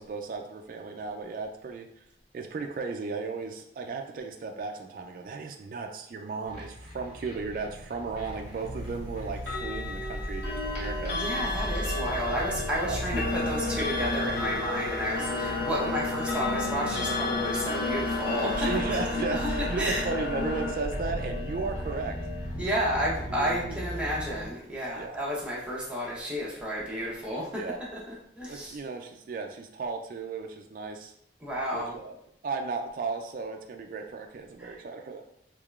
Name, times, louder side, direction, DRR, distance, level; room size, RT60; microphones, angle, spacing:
voice 1, 0.0-1.9 2.3-11.2 12.8-13.0 18.6-22.2 22.9-24.0 25.0-25.2 27.5-27.8 28.5-31.1 31.7-32.1 32.4-35.2, right 4 dB, 50° right, 3 dB, 0.3 m, -35 dB
sound 1, 6.4-24.5, equal, 40° left, 1.1 m, -37 dB
Clock, 9.4-22.5, left 2 dB, 85° left, 1.1 m, -34 dB
voice 2, 11.1-20.0 22.6-27.6 28.1-28.8 31.4-32.0 34.6-34.8, equal, 5° right, -6 dB, 0.8 m, -31 dB
sound 2, 13.1-20.7, left 3 dB, 65° left, 0.4 m, -33 dB
3.6 x 3.1 x 2.3 m, 0.73 s
head